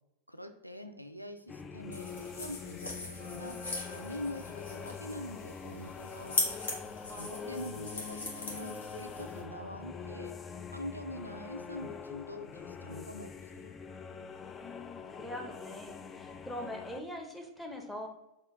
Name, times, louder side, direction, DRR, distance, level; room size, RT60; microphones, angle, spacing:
voice 1, 0.3-3.6 3.9-6.4 7.1-10.4 10.7-13.7, left 1 dB, 90° right, 6 dB, 0.3 m, -44 dB
sound 1, 1.5-17.0, left 6 dB, 20° left, 0.3 m, -44 dB
sound 2, 1.9-9.4, left 2 dB, 65° left, 1.1 m, -40 dB
voice 2, 7.1-7.7 14.6-18.1, left 1 dB, 5° left, 2 dB, 0.8 m, -43 dB
4.2 x 2.4 x 4.7 m, 0.90 s
figure-of-eight pair, 90°, 0 cm